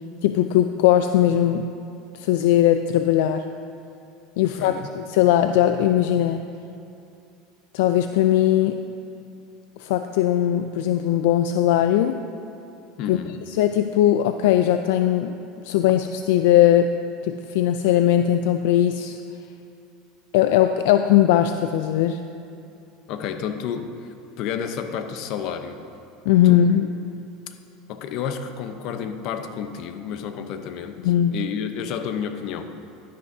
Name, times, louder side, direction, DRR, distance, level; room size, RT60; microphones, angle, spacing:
voice 1, 0.2-1.7 2.1-3.5 4.4-6.4 7.7-8.8 9.8-12.2 13.1-13.2 13.6-15.4 15.6-16.9 17.2-19.2 20.3-22.2 26.3-26.9 31.0-31.4, left 11 dB, 75° left, 8 dB, 0.3 m, -19 dB
voice 2, 4.6-4.9 13.0-13.4 23.1-24.1 24.4-25.8 26.4-26.7 27.9-32.6, left 7 dB, 60° left, 8 dB, 0.8 m, -30 dB
12.0 x 10.5 x 2.7 m, 2.6 s
supercardioid pair, 125°, 0 cm